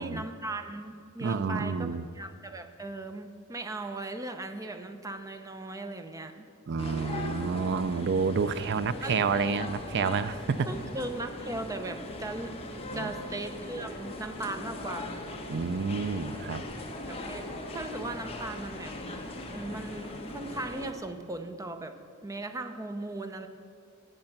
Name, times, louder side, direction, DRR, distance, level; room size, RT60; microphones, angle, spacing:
voice 1, 0.0-6.5 9.0-9.1 10.6-12.6 12.9-15.1 17.1-17.4 17.7-19.0 19.5-21.9 22.2-23.5, right 2 dB, 15° right, 7 dB, 0.7 m, -38 dB
voice 2, 1.2-2.0 6.7-10.7 12.9-13.1 15.5-16.6, right 5 dB, 55° right, 14 dB, 0.4 m, -29 dB
sound 1, 6.8-20.9, left 1 dB, 25° left, 1.2 m, -39 dB
17.5 x 6.6 x 6.0 m, 2.6 s
head